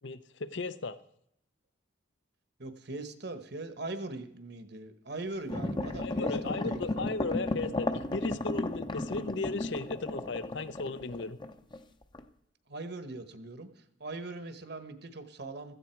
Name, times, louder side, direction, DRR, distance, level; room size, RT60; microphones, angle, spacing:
voice 1, 0.0-1.0 6.0-11.4, left 3 dB, 60° left, 0.7 m, -36 dB
voice 2, 2.6-7.1 12.7-15.7, right 2 dB, 55° right, 1.3 m, -41 dB
sound 1, 5.5-11.8 12.1-12.2, left 2 dB, 25° left, 0.7 m, -34 dB
16.5 x 14.0 x 4.6 m
head